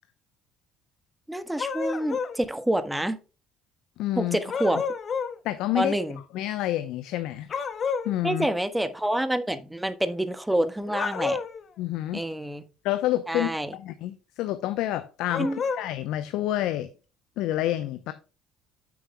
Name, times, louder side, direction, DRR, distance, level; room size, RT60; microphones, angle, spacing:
voice 1, 1.3-3.2 4.2-4.8 5.7-6.2 8.2-11.4 12.1-12.6 13.3-13.7 15.4-15.6, right 1 dB, 5° right, 1.3 m, -27 dB
sound 1, 1.6-2.4 4.5-5.4 7.5-8.1 10.9-11.6 15.3-15.9, left 5 dB, 45° left, 1.2 m, -30 dB
voice 2, 4.0-4.4 5.4-6.0 6.3-7.5 8.0-8.5 11.8-12.2 12.8-15.5 15.8-16.9 17.4-18.1, left 14 dB, 65° left, 0.7 m, -28 dB
9.2 x 8.7 x 2.2 m
hypercardioid pair, 55°, 0 cm